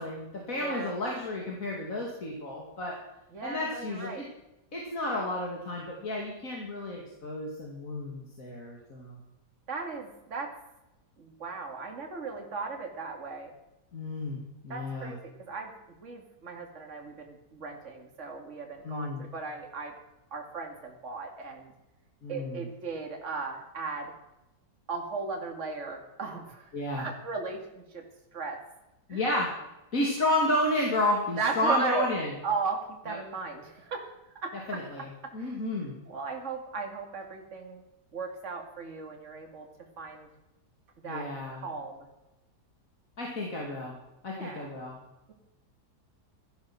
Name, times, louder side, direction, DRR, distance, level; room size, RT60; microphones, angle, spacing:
voice 1, 0.0-2.9 3.4-4.2 4.7-9.2 13.9-15.1 18.8-19.2 22.2-22.7 26.7-27.1 29.1-29.5 29.9-32.3 34.7-35.1 35.3-36.0 41.0-41.6 43.2-43.9 44.2-45.0, left 1 dB, 55° left, -1 dB, 3.0 m, -31 dB
voice 2, 0.5-0.9 3.3-4.3 9.7-10.5 11.2-13.5 14.7-15.7 16.0-19.9 20.3-21.7 22.3-24.1 24.9-26.7 27.0-28.0 28.3-28.6 29.1-29.2 31.4-32.1 32.4-34.2 34.4-34.8 35.4-35.6 36.1-37.8 38.1-39.7 40.0-40.3 41.0-41.3 41.6-42.1 44.3-44.7, right 4 dB, 45° right, 3 dB, 2.5 m, -36 dB
16.0 x 13.0 x 6.2 m, 0.95 s
omnidirectional pair, 1.8 m